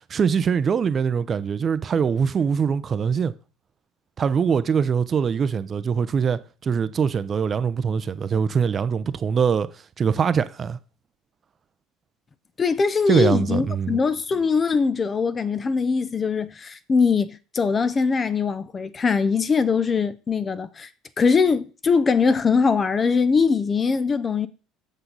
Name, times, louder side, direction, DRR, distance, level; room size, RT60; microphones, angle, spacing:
voice 1, 0.1-3.3 4.2-9.7 10.0-10.8 13.1-14.0, right 6 dB, 40° right, 0.6 m, -22 dB
voice 2, 12.6-20.9 21.2-24.5, left 5 dB, 30° left, 0.7 m, -22 dB
8.2 x 6.7 x 4.0 m
hypercardioid pair, 70°, 0 cm